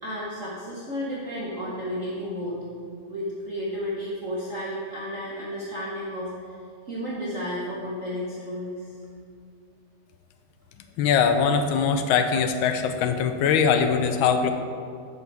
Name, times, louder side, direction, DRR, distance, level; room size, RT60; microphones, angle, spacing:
voice 1, 0.0-2.6 3.1-6.3 6.9-8.9, equal, 45° right, -6 dB, 1.3 m, -32 dB
voice 2, 11.0-14.5, left 6 dB, 75° left, 7 dB, 1.4 m, -22 dB
8.1 x 6.4 x 4.7 m, 2.4 s
omnidirectional pair, 2.4 m